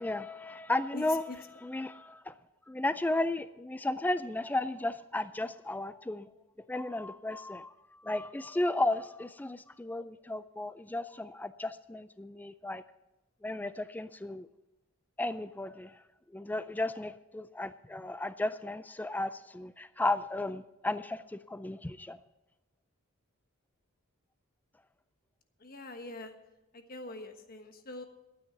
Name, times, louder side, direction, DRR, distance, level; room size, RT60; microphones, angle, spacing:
voice 1, 0.0-1.3 1.6-2.3 2.7-6.3 6.7-7.7 8.0-12.8 13.4-14.5 15.2-16.0 16.3-22.2, left 2 dB, 10° left, 14 dB, 0.3 m, -34 dB
voice 2, 0.9-1.4 25.6-26.3 26.7-28.0, left 2 dB, 45° left, 6 dB, 1.3 m, -43 dB
12.5 x 9.3 x 5.9 m, 0.99 s
head